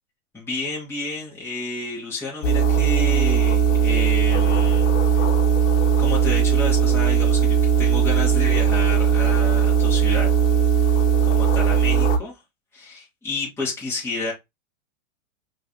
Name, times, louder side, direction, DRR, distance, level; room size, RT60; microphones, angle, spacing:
voice 1, 0.3-5.2 5.8-10.3 11.2-12.4 12.7-14.3, left 3 dB, 5° left, 2.3 m, -31 dB
sound 1, 2.4-12.2, right 7 dB, 70° left, 1.4 m, -18 dB
5.1 x 3.4 x 2.8 m
supercardioid pair, 140°, 38 cm